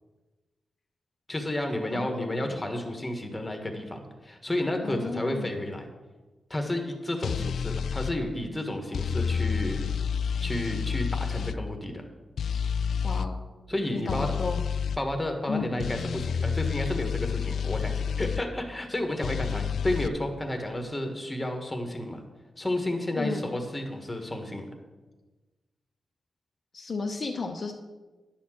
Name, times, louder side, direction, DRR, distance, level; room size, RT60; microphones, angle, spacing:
voice 1, 1.3-5.9 6.5-9.9 10.4-12.0 13.7-14.3 15.0-22.2 22.6-24.7, left 1 dB, 15° left, 4 dB, 1.3 m, -31 dB
voice 2, 1.9-2.3 4.8-5.5 13.0-13.3 13.9-14.6 15.5-15.6 23.2-23.6 26.7-27.7, left 4 dB, 45° left, 2 dB, 0.7 m, -33 dB
sound 1, 7.2-8.1 8.9-11.6 12.4-13.3 14.1-15.0 15.8-18.4 19.2-20.1, left 6 dB, 80° left, 0.3 m, -29 dB
10.5 x 4.3 x 7.4 m, 1.2 s
wide cardioid pair, 135°, 0 cm